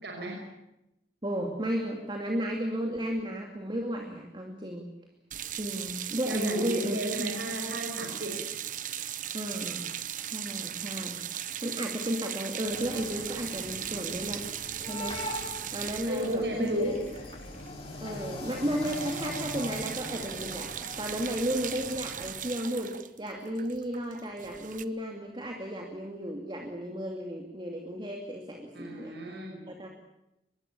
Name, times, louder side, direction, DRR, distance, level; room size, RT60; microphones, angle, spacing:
voice 1, 0.0-0.4 6.3-8.4 16.1-17.0 28.7-29.7, equal, 70° right, 1 dB, 5.7 m, -33 dB
voice 2, 1.2-4.9 5.6-7.0 9.3-9.9 10.3-14.5 14.8-15.2 15.7-16.7 18.0-29.1 29.7-29.9, equal, 25° right, 2 dB, 2.6 m, -34 dB
sound 1, 5.3-17.7 18.0-18.2 18.4-24.9, right 10 dB, 45° right, 1.0 m, -38 dB
sound 2, 12.6-22.3, left 1 dB, 30° left, 7.4 m, -41 dB
24.5 x 21.5 x 8.6 m, 0.89 s
head